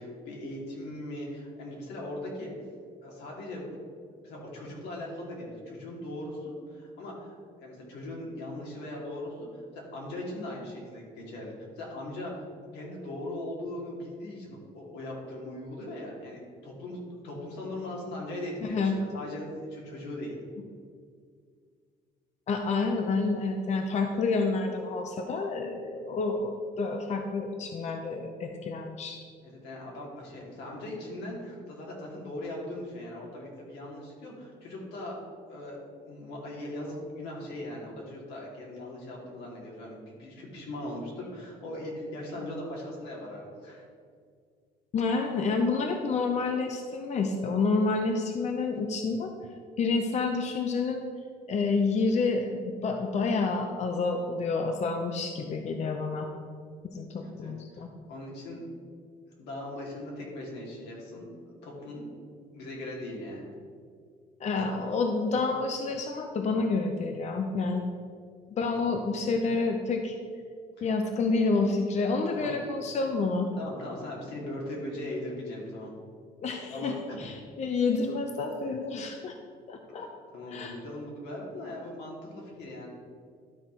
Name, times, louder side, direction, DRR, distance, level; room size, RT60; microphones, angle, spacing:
voice 1, 0.0-2.5 3.0-3.8 4.2-7.4 7.6-12.5 12.7-17.0 17.2-20.4 29.4-35.2 35.5-43.8 57.2-58.6 59.4-61.3 61.6-62.1 62.5-63.5 64.6-64.7 68.7-68.9 70.8-70.9 72.3-72.5 73.6-75.9 76.7-77.2 80.3-82.9, left 1 dB, 85° left, -3 dB, 2.4 m, -39 dB
voice 2, 18.6-19.0 22.5-29.2 44.9-49.3 49.8-51.1 51.5-56.3 56.9-57.9 64.4-67.9 68.5-70.2 70.8-73.5 76.4-79.4 79.7-80.1 80.5-80.7, left 4 dB, 40° left, 4 dB, 0.7 m, -29 dB
12.0 x 4.2 x 4.5 m, 2.1 s
cardioid pair, 110°, 17 cm